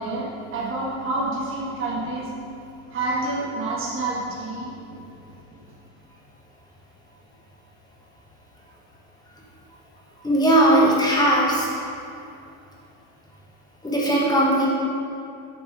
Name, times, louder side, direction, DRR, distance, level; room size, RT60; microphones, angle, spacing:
voice 1, 0.0-2.3 2.9-5.3, right 2 dB, 35° right, -5 dB, 1.4 m, -28 dB
voice 2, 10.2-11.7 13.8-14.7, right 1 dB, 10° left, -4 dB, 1.1 m, -18 dB
7.4 x 4.2 x 4.7 m, 2.6 s
cardioid pair, 150°, 36 cm